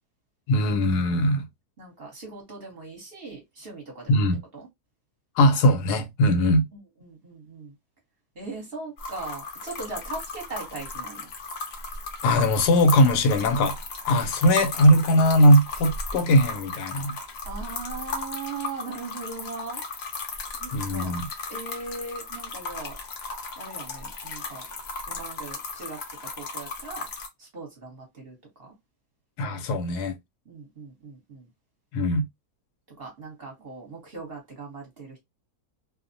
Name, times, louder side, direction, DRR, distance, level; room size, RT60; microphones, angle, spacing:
voice 1, 0.5-1.4 4.1-4.4 5.4-6.6 12.2-13.8 14.1-17.2 20.7-21.3 29.4-30.2 31.9-32.2, equal, 85° left, 1.2 m, -20 dB
voice 2, 1.8-4.2 4.5-4.7 6.7-7.7 8.3-11.3 17.4-19.8 20.5-23.0 23.6-24.7 25.1-26.0 26.4-27.1 27.4-28.7 30.5-31.5 33.0-35.2, right 3 dB, 40° right, 1.1 m, -39 dB
sound 1, 9.0-27.3, left 3 dB, 55° left, 0.7 m, -36 dB
2.7 x 2.0 x 2.6 m
omnidirectional pair, 1.7 m